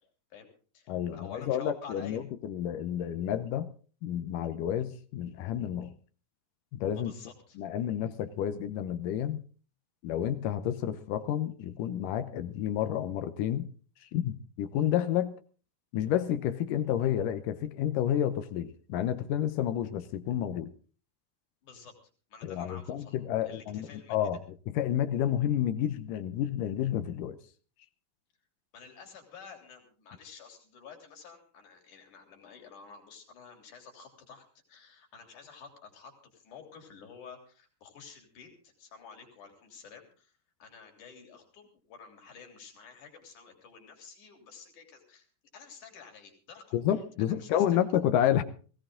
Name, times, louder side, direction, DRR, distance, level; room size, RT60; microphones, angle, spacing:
voice 1, 0.3-2.2 6.9-7.6 21.6-22.0 22.3-24.2 28.7-40.3 40.6-45.3 45.5-47.8, left 6 dB, 70° left, 4.6 m, -50 dB
voice 2, 0.9-2.2 2.5-3.7 4.0-5.9 6.7-7.1 7.6-9.4 10.0-13.7 14.1-15.3 15.9-20.7 22.5-24.4 24.8-27.4 46.7-48.4, left 10 dB, 85° left, 2.5 m, -30 dB
18.0 x 16.5 x 3.8 m
omnidirectional pair, 3.6 m